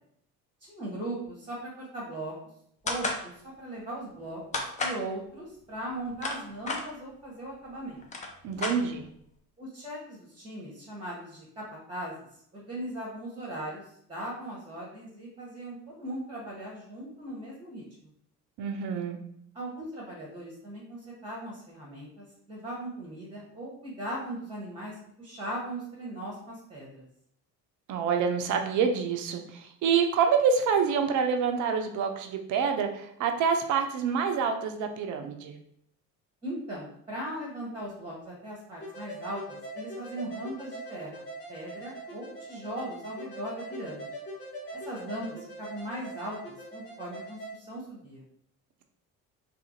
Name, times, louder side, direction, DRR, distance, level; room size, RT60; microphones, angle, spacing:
voice 1, 0.6-2.3 2.8-4.4 4.8-8.0 9.6-12.2 12.5-18.1 19.5-27.1 36.4-44.1 44.7-48.2, right 1 dB, 10° right, -4 dB, 0.9 m, -39 dB
sound 1, 2.9-3.2 4.5-5.0 5.9-6.8 7.7-7.8 8.0-9.2, left 3 dB, 15° left, 0.4 m, -32 dB
voice 2, 8.4-9.1 18.6-19.2 27.9-35.5, right 6 dB, 40° right, 6 dB, 0.5 m, -27 dB
sound 2, 38.8-47.5, right 1 dB, 80° left, 0.9 m, -42 dB
2.7 x 2.5 x 2.6 m, 0.69 s
figure-of-eight pair, 50°, 48 cm